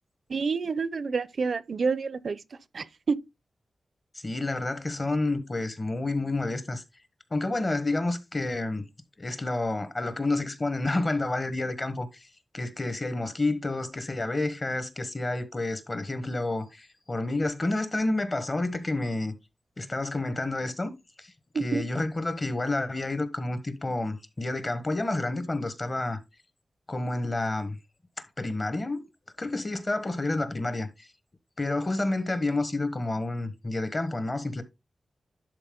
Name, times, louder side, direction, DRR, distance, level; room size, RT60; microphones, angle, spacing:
voice 1, 0.3-2.4 2.7-3.2 21.5-21.8, right 5 dB, 65° right, 0.6 m, -28 dB
voice 2, 4.1-6.8 7.3-8.8 9.2-12.1 12.5-19.3 19.8-20.9 21.2-21.3 21.6-26.2 26.9-27.8 28.4-29.0 29.4-31.1 31.6-34.6, left 2 dB, 30° left, 1.3 m, -29 dB
11.0 x 4.3 x 3.8 m
wide cardioid pair, 115°, 0 cm